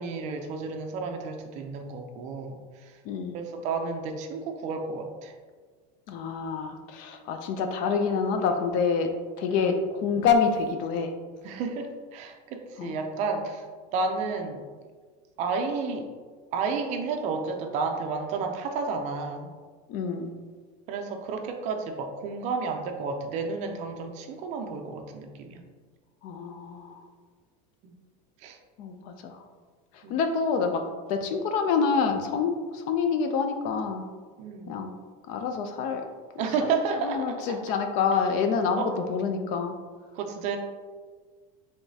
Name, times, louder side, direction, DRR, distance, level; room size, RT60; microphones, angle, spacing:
voice 1, 0.0-2.9 3.3-5.3 9.5-9.9 11.4-13.6 13.9-14.6 15.4-16.1 16.5-19.5 20.9-25.6 28.4-28.6 30.0-30.1 34.4-34.8 36.4-37.6 38.8-38.9 40.1-40.6, right 4 dB, 40° right, 4 dB, 0.4 m, -31 dB
voice 2, 3.1-3.4 6.1-9.1 9.4-11.1 12.8-13.0 19.9-20.3 26.2-26.9 28.8-29.4 30.1-34.0 34.7-34.9 35.3-36.0 36.4-36.7 37.0-39.7, left 5 dB, 45° left, 6 dB, 0.4 m, -27 dB
4.8 x 3.5 x 2.7 m, 1.5 s
cardioid pair, 170°, 19 cm